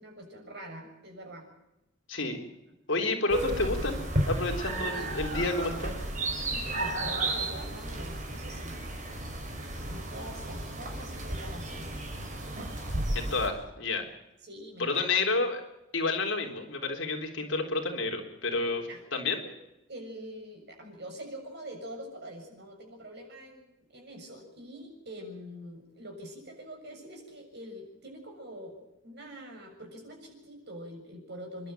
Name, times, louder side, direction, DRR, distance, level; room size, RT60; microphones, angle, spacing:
voice 1, 0.0-1.5 4.7-5.4 6.4-8.8 9.8-12.1 14.4-15.1 18.9-19.0 19.4-19.5 19.9-31.7, equal, 55° right, 2 dB, 7.1 m, -44 dB
voice 2, 2.1-2.4 2.9-4.0 4.3-5.9 13.1-14.1 14.8-15.6 15.9-19.4, left 3 dB, 65° left, 2 dB, 3.8 m, -30 dB
sound 1, 3.3-13.5, right 1 dB, 40° right, 5.1 m, -33 dB
28.0 x 12.0 x 9.1 m, 0.91 s
head